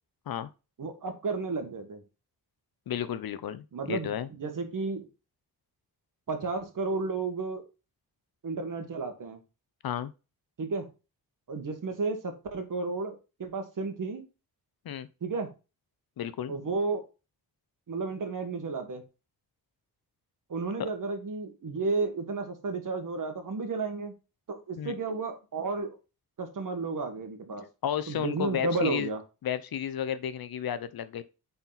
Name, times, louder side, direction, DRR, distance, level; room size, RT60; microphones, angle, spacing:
voice 1, 0.8-2.0 3.7-5.1 6.3-7.6 8.4-9.4 10.6-10.9 11.5-14.2 15.2-15.5 16.5-17.0 17.9-19.0 20.5-24.1 24.5-26.0 26.4-27.7 28.1-29.2, right 3 dB, 55° right, 1.6 m, -32 dB
voice 2, 2.9-4.3 9.8-10.1 14.8-15.1 16.2-16.5 20.8-20.9 24.8-24.9 27.8-29.1 29.4-31.2, left 9 dB, 65° left, 0.7 m, -32 dB
8.6 x 4.3 x 4.0 m
wide cardioid pair, 115°, 39 cm